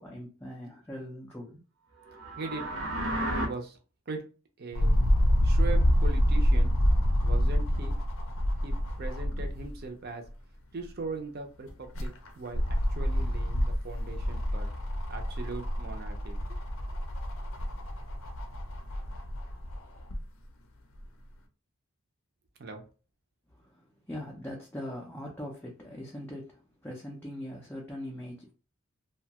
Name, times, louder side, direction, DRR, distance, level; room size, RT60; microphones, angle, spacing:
voice 1, 0.0-1.6 23.5-28.5, left 1 dB, 10° left, 0.4 m, -41 dB
sound 1, 2.1-3.5, right 1 dB, 75° right, 0.7 m, -32 dB
voice 2, 3.1-3.8 4.1-4.2 4.6-4.9 5.4-6.7 7.2-8.0 8.6-10.2 10.7-14.7 15.1-16.4 22.6-22.8, right 3 dB, 45° right, 0.5 m, -40 dB
sound 2, 4.7-9.8 10.2-10.3 11.7-20.2 21.0-21.1, equal, 65° left, 0.5 m, -27 dB
2.7 x 2.2 x 2.8 m
head